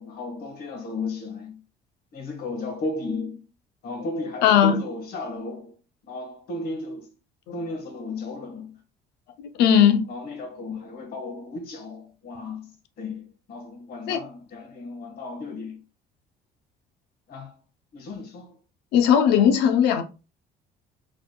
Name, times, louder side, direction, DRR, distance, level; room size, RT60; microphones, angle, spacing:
voice 1, 0.0-1.6 2.1-3.4 3.8-5.8 6.1-7.1 7.5-8.7 10.1-15.8 17.3-17.6 17.9-18.5, left 3 dB, 65° left, 1.6 m, -34 dB
voice 2, 4.4-4.8 9.6-10.1 14.1-14.2 18.9-20.0, left 8 dB, 90° left, 0.8 m, -17 dB
4.9 x 4.1 x 2.3 m
cardioid pair, 110°, 17 cm